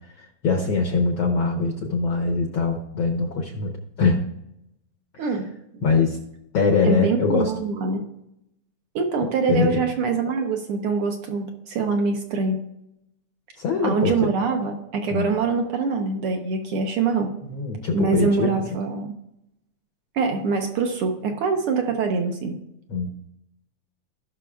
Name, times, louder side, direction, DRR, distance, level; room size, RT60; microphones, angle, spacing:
voice 1, 0.2-3.7 4.0-4.3 5.1-5.4 5.8-6.2 6.5-7.5 9.5-9.8 13.6-14.3 15.1-15.3 17.4-18.5 22.9-23.1, left 4 dB, 70° left, 2 dB, 1.2 m, -23 dB
voice 2, 6.8-8.0 8.9-12.6 13.8-17.3 17.9-19.2 20.1-22.6, right 4 dB, 65° right, 4 dB, 1.4 m, -24 dB
18.0 x 6.0 x 2.3 m, 0.82 s
omnidirectional pair, 3.4 m